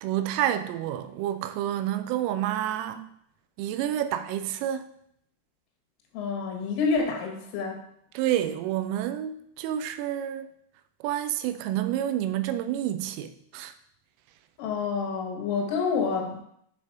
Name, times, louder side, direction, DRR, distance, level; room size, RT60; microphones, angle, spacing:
voice 1, 0.0-3.1 3.6-4.9 8.1-10.5 11.0-13.7, right 11 dB, 90° right, 3.2 m, -29 dB
voice 2, 6.1-7.8 14.6-16.4, left 5 dB, 80° left, 3.9 m, -28 dB
9.4 x 4.2 x 4.6 m
omnidirectional pair, 5.7 m